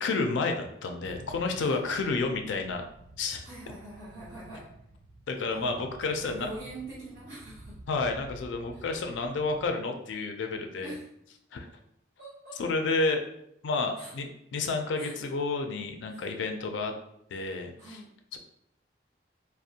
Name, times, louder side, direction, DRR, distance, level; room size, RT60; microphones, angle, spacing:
voice 1, 0.0-2.8 3.2-3.4 5.3-6.5 7.9-10.9 11.5-11.7 12.6-13.2 13.6-14.3 14.5-16.9 17.3-18.0 18.3-18.4, left 3 dB, 85° left, 5 dB, 0.4 m, -30 dB
sound 1, 1.0-9.7, right 1 dB, 80° right, 0.3 m, -50 dB
voice 2, 3.4-4.7 5.5-5.7 6.2-7.8 8.7-8.8 10.8-11.1 12.2-12.6 14.0-14.1 15.0-15.1 16.1-16.3 17.8-18.1, right 1 dB, 50° right, -9 dB, 0.7 m, -43 dB
2.5 x 2.0 x 2.7 m, 0.76 s
head